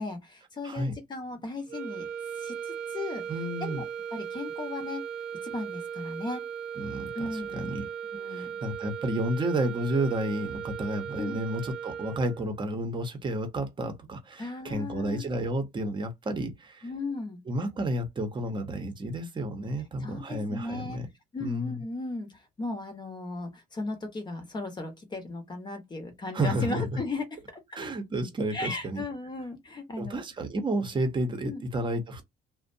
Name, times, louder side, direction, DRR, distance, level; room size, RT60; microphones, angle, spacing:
voice 1, 0.0-2.1 2.4-3.2 3.6-3.8 4.1-5.0 5.4-6.4 7.1-7.8 8.1-8.6 11.2-11.4 14.4-15.3 16.8-17.4 20.0-21.0 21.3-27.8 28.5-30.2 31.4-31.6, left 2 dB, 25° left, 0.9 m, -36 dB
sound 1, 1.7-12.6, right 8 dB, 80° right, 0.4 m, -37 dB
voice 2, 3.3-3.8 6.8-7.9 8.3-16.9 17.5-21.1 21.4-21.8 26.3-26.9 27.7-29.0 30.0-32.2, right 1 dB, 30° right, 0.8 m, -31 dB
2.5 x 2.1 x 2.5 m
cardioid pair, 110°, 17 cm